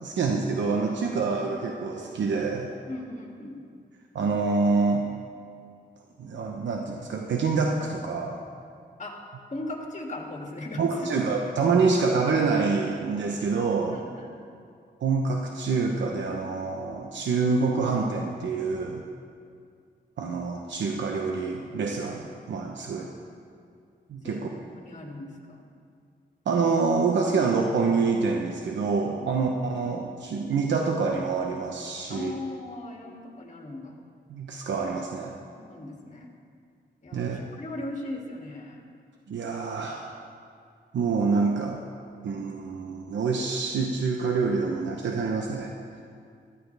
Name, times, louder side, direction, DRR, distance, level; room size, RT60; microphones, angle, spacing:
voice 1, 0.0-2.7 4.1-5.0 6.2-8.4 10.8-14.0 15.0-19.0 20.2-23.1 24.1-24.5 26.5-32.3 34.3-35.4 37.1-37.4 39.3-40.1 40.9-41.8 42.2-45.7, right 4 dB, 90° right, 1 dB, 1.0 m, -26 dB
voice 2, 2.9-3.6 9.0-9.2 9.5-11.1 13.9-14.4 24.2-25.7 29.2-29.3 32.1-33.9 35.6-36.3 37.0-38.8, left 2 dB, 40° left, 0 dB, 2.5 m, -38 dB
17.0 x 14.0 x 3.4 m, 2.3 s
cardioid pair, 70°, 18 cm